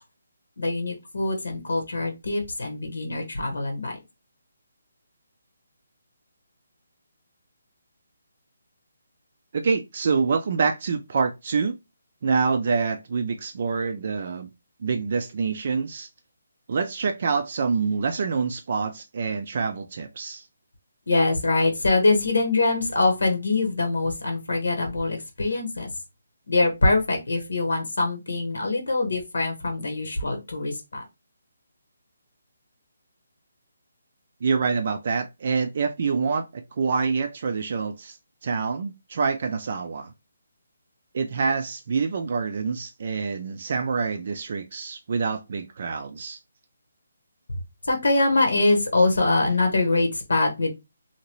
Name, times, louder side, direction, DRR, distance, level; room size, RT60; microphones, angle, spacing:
voice 1, 0.6-4.0 21.1-25.9 26.5-31.1 47.8-50.7, left 2 dB, 90° left, 1.0 m, -23 dB
voice 2, 9.5-11.7 12.2-14.5 14.8-16.1 16.7-20.5 34.4-40.1 41.1-46.4, right 5 dB, 40° right, 0.3 m, -26 dB
2.8 x 2.7 x 3.0 m
hypercardioid pair, 175°, 0 cm